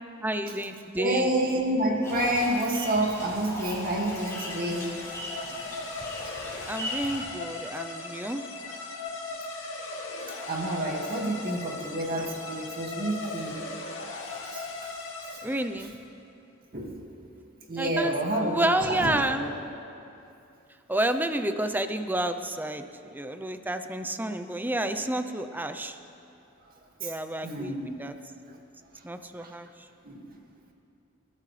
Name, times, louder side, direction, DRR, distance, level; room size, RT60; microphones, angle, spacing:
voice 1, 0.2-1.4 6.7-8.4 15.4-15.9 17.8-18.1 18.4-19.6 20.9-22.9 23.1-26.0 27.0-28.1 29.0-29.7, right 1 dB, 10° right, 8 dB, 0.6 m, -30 dB
voice 2, 1.0-4.9 10.5-13.6 14.5-14.9 16.7-17.0 17.7-19.5 27.0-27.1 27.4-27.9 29.4-29.5 30.0-30.2, right 1 dB, 50° right, 0 dB, 2.1 m, -29 dB
sound 1, 2.0-7.2, left 1 dB, 15° left, 4.3 m, -38 dB
sound 2, 4.1-15.8, left 3 dB, 75° left, 2.4 m, -38 dB
29.0 x 14.0 x 3.3 m, 2.7 s
head